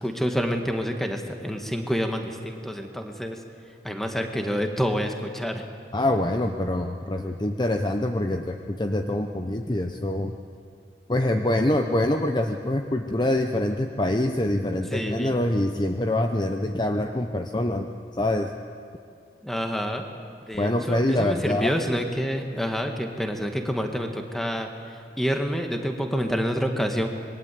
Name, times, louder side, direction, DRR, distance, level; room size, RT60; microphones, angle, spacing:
voice 1, 0.0-3.4 3.8-5.7 14.9-15.4 19.4-20.1 20.5-24.7 25.2-27.1, equal, ahead, 4 dB, 1.9 m, -28 dB
voice 2, 5.9-10.4 11.1-17.9 18.2-18.5 20.5-21.7, left 1 dB, 25° left, 5 dB, 0.9 m, -25 dB
26.0 x 22.0 x 8.6 m, 2.5 s
head